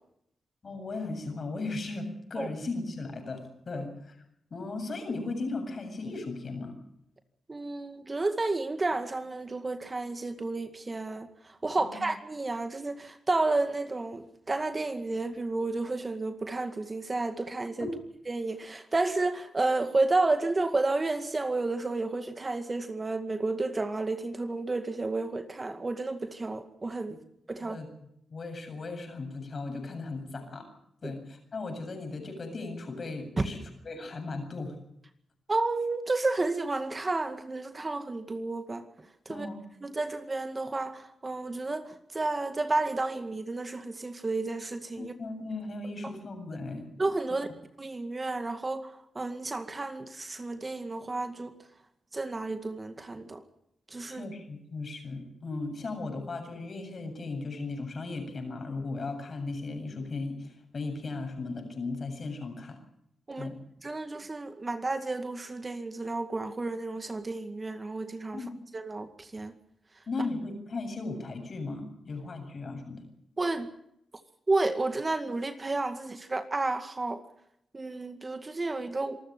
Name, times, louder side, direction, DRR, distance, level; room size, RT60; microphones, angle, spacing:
voice 1, 0.6-4.2 4.5-6.7 11.8-12.0 17.8-17.9 27.1-27.2 27.6-27.9 28.3-30.7 31.0-34.8 39.3-39.6 45.0-46.9 54.1-62.8 63.4-63.6 68.3-68.5 70.1-73.0, left 3 dB, 55° left, 7.8 m, -37 dB
voice 2, 7.5-11.3 11.6-17.9 18.3-27.2 27.5-27.8 31.0-31.1 33.4-33.5 35.5-38.8 39.3-39.5 39.8-45.1 47.0-47.5 47.8-51.5 52.1-53.4 53.9-54.2 63.3-63.5 63.8-68.4 68.7-69.5 73.4-73.7 74.5-77.2 77.7-79.2, right 2 dB, 35° right, 2.1 m, -31 dB
26.5 x 13.0 x 9.2 m
cardioid pair, 55°, 0 cm